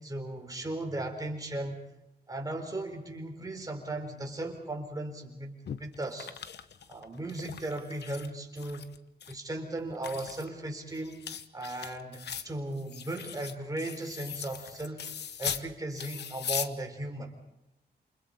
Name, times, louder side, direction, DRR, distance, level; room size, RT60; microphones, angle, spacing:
voice 1, 0.0-1.8 2.3-6.3 6.9-8.9 9.3-11.2 11.5-15.1 15.4-17.4, right 1 dB, 20° right, 3 dB, 4.1 m, -37 dB
sound 1, 5.7-8.3 8.6-9.3 9.8-15.7 15.9-16.7, left 7 dB, 70° left, 1.1 m, -39 dB
28.5 x 28.5 x 4.3 m, 0.89 s
wide cardioid pair, 150°, 18 cm